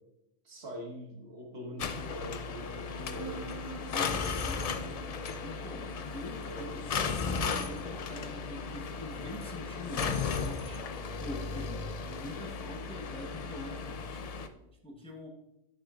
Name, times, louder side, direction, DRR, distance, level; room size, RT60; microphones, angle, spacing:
voice 1, 0.4-3.6 6.5-6.8, equal, 60° right, -1 dB, 1.8 m, -43 dB
sound 1, 1.8-14.5, left 5 dB, 80° left, 0.3 m, -36 dB
sound 2, 3.1-14.6, right 2 dB, 65° left, 1.8 m, -51 dB
voice 2, 3.9-4.7 5.4-10.9 11.2-14.3 14.8-15.3, left 1 dB, 5° left, 1 dB, 0.8 m, -44 dB
9.4 x 6.7 x 2.4 m, 0.89 s
omnidirectional pair, 1.2 m